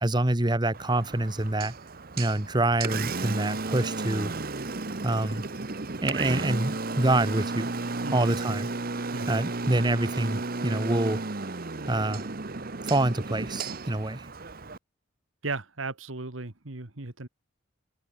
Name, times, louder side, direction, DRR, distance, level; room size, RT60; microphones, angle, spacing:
voice 1, 0.0-1.7 2.2-4.3 5.0-5.4 6.0-7.7 8.1-8.7 9.3-11.2 11.9-12.3 12.8-14.3, right 1 dB, 20° right, 1.3 m, -26 dB
Engine, 0.7-14.8, right 3 dB, 50° right, 1.2 m, -33 dB
voice 2, 8.0-8.4 9.1-9.3 15.4-17.3, right 3 dB, 90° right, 1.9 m, -36 dB
head